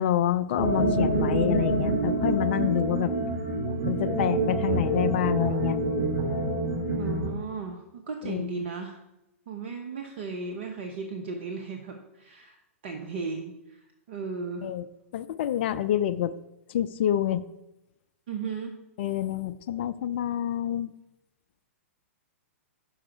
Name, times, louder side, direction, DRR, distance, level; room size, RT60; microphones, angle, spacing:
voice 1, 0.0-3.1 3.8-5.8 8.2-8.7 14.6-14.9 15.1-16.3 16.7-17.4 19.0-20.9, left 11 dB, 50° left, 12 dB, 0.3 m, -27 dB
sound 1, 0.6-7.3, right 2 dB, 25° right, 2.1 m, -26 dB
voice 2, 7.0-9.0 9.5-12.6 12.8-14.7 18.3-18.8, right 4 dB, 50° right, 3 dB, 0.7 m, -36 dB
6.2 x 4.8 x 4.5 m, 0.90 s
figure-of-eight pair, 110°, 8 cm